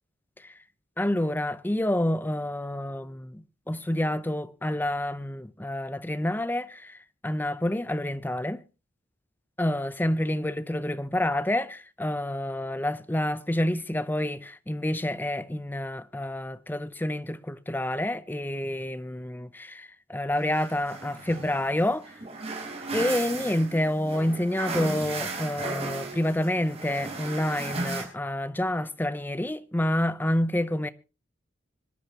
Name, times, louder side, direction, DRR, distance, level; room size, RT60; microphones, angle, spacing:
voice 1, 1.0-7.0 7.2-8.6 9.6-22.1 22.9-30.9, left 1 dB, 10° left, 0.6 m, -28 dB
sound 1, 20.4-28.0, right 3 dB, 30° right, 4.5 m, -35 dB
26.0 x 10.5 x 2.9 m
head